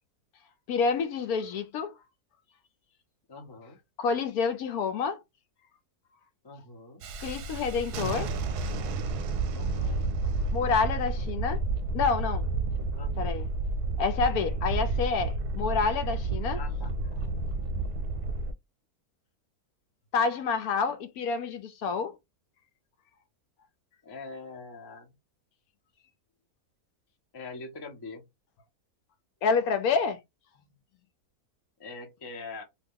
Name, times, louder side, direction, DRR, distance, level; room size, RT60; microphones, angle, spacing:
voice 1, 0.7-1.9 4.0-5.2 7.2-8.3 10.5-11.6 11.9-12.5 13.2-13.5 14.0-16.6 20.1-22.1 29.4-30.2, left 5 dB, 75° left, 1.1 m, -28 dB
voice 2, 3.3-3.8 6.4-7.0 9.5-10.1 12.9-13.5 16.5-16.9 24.0-25.1 27.3-28.3 31.8-32.6, left 3 dB, 35° left, 0.3 m, -43 dB
Thunderstorm, 7.0-18.5, right 2 dB, 90° right, 1.1 m, -30 dB
2.9 x 2.3 x 3.6 m
omnidirectional pair, 1.7 m